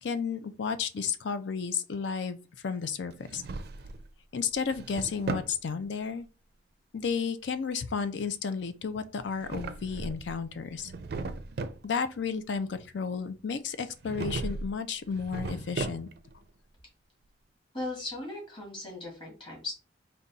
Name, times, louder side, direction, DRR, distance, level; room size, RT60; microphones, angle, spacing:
voice 1, 0.0-3.4 4.3-6.3 6.9-10.9 11.8-16.1, left 6 dB, 80° left, 0.5 m, -32 dB
Drawer open or close, 3.1-4.1 4.5-5.6 9.2-10.3 10.7-11.8 14.0-14.7 15.1-16.3, right 3 dB, 60° right, 0.4 m, -36 dB
voice 2, 17.7-19.8, left 2 dB, 30° left, 1.9 m, -38 dB
3.9 x 2.3 x 3.9 m
head